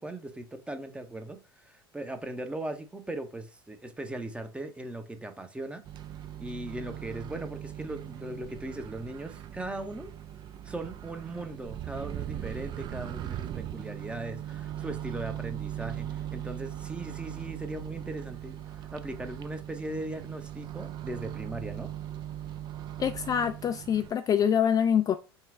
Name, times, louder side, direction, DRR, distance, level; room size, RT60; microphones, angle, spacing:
voice 1, 0.0-5.8 6.4-10.1 10.6-21.9, right 1 dB, 10° right, 0.8 m, -39 dB
Microwave oven, 5.8-24.1, right 12 dB, 35° right, 0.4 m, -39 dB
voice 2, 23.0-25.2, left 8 dB, 30° left, 0.4 m, -25 dB
5.6 x 2.3 x 3.7 m
figure-of-eight pair, 75°, 13 cm